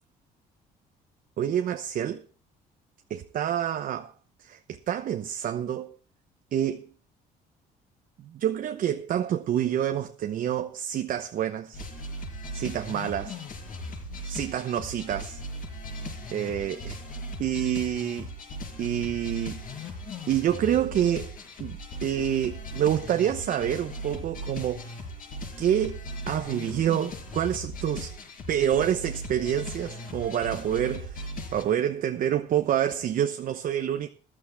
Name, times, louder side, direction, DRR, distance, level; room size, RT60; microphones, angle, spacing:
voice 1, 1.4-2.2 3.1-4.1 4.4-6.0 6.5-6.9 8.2-11.8 12.5-13.4 14.2-15.4 16.3-16.9 17.4-18.3 18.8-19.9 20.3-21.3 21.6-24.9 25.6-28.1 28.5-31.3 31.5-34.1, right 10 dB, 55° right, 0.9 m, -27 dB
sound 1, 11.7-31.6, equal, 55° left, 5.4 m, -38 dB
14.5 x 12.0 x 3.4 m
cardioid pair, 110°, 17 cm